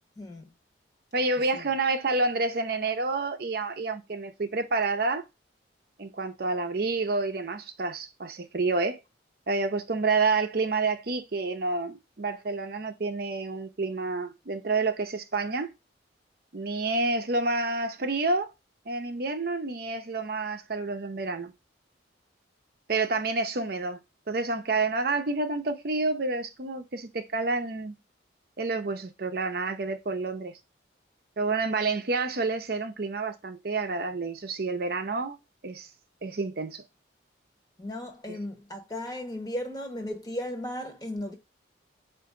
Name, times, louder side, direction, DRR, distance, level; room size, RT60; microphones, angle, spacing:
voice 1, 0.2-0.5 1.5-1.7 37.8-41.3, left 1 dB, 20° left, 0.9 m, -36 dB
voice 2, 1.1-5.2 6.0-9.0 9.5-15.7 16.5-18.5 18.9-21.5 22.9-24.0 24.3-27.9 28.6-30.5 31.4-35.4 35.6-35.9 36.2-36.8 38.3-38.4, right 3 dB, 50° right, 0.6 m, -29 dB
4.8 x 2.5 x 3.6 m
head